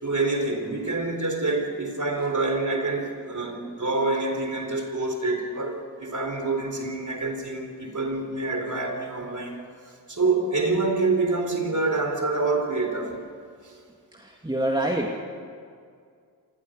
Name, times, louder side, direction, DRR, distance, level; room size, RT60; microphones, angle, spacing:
voice 1, 0.0-9.6 10.1-13.2 13.6-13.7, right 3 dB, 50° right, 4 dB, 4.0 m, -26 dB
voice 2, 14.1-15.2, right 1 dB, 10° right, 1 dB, 2.2 m, -26 dB
28.0 x 15.5 x 6.6 m, 2.2 s
cardioid pair, 45°, 40 cm